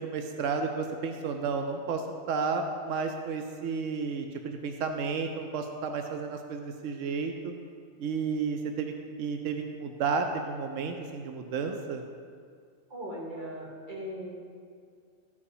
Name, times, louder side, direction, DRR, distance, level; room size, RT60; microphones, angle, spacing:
voice 1, 0.0-7.5 8.0-12.0, right 5 dB, 90° right, 5 dB, 1.0 m, -32 dB
voice 2, 12.9-14.3, equal, 40° right, -4 dB, 1.9 m, -38 dB
13.0 x 5.4 x 4.9 m, 2.1 s
omnidirectional pair, 1.3 m